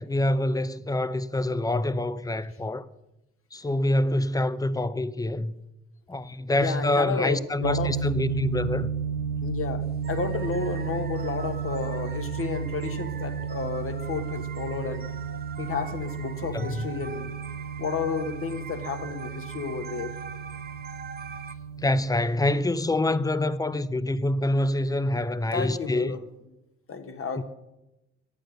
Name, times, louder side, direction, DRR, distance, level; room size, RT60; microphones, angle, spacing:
voice 1, 0.0-2.9 3.5-5.5 6.1-8.9 16.5-16.9 21.8-26.2 27.3-27.4, left 1 dB, 10° left, 0.6 m, -26 dB
voice 2, 6.5-7.9 9.4-15.1 15.6-17.3 17.8-20.2 25.5-26.2 26.9-27.4, left 5 dB, 45° left, 1.5 m, -32 dB
sound 1, 7.6-22.0, right 7 dB, 65° right, 0.9 m, -33 dB
sound 2, 10.0-21.6, right 6 dB, 30° right, 0.9 m, -43 dB
10.5 x 8.9 x 6.5 m
supercardioid pair, 60°, 30 cm